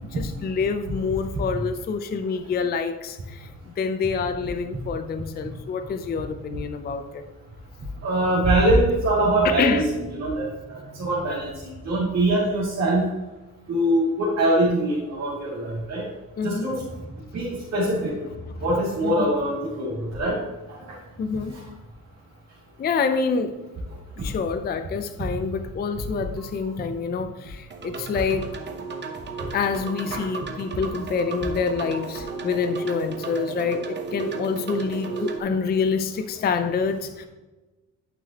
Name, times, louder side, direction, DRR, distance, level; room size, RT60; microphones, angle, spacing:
voice 1, 0.1-7.2 9.4-9.9 16.4-16.7 18.6-18.7 19.0-19.3 21.2-21.6 22.8-23.6 24.2-28.6 29.5-37.2, left 5 dB, 30° left, 8 dB, 0.5 m, -27 dB
voice 2, 8.0-9.8 10.1-13.1 13.7-16.0 16.4-16.8 17.3-18.1 18.6-20.4 20.9-21.0 30.1-30.2, right 1 dB, 45° right, -7 dB, 2.5 m, -23 dB
sound 1, 27.7-35.4, right 4 dB, 30° right, 0.9 m, -34 dB
11.5 x 5.7 x 2.9 m, 1.1 s
cardioid pair, 140°, 35 cm